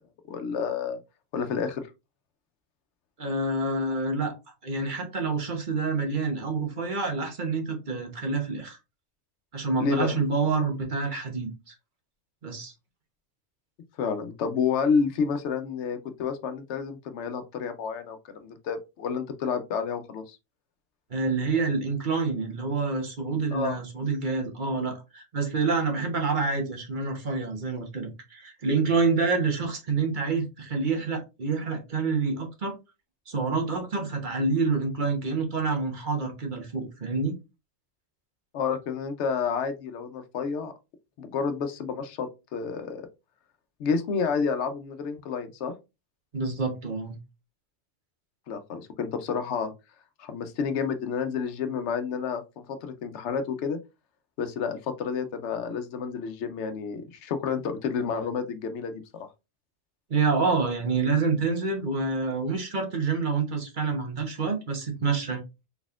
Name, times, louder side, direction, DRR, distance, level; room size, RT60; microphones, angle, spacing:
voice 1, 0.3-1.0 1.3-1.8 9.8-10.1 14.0-20.4 23.5-23.8 38.5-40.7 41.2-43.0 43.8-45.7 48.5-49.7 50.2-53.8 54.4-59.3, left 6 dB, 85° left, 1.0 m, -30 dB
voice 2, 3.2-4.3 4.6-8.8 9.5-11.7 12.4-12.7 21.1-32.8 33.3-37.3 46.3-47.2 60.1-65.4, right 4 dB, 45° right, 1.1 m, -27 dB
4.1 x 3.5 x 2.4 m
omnidirectional pair, 1.1 m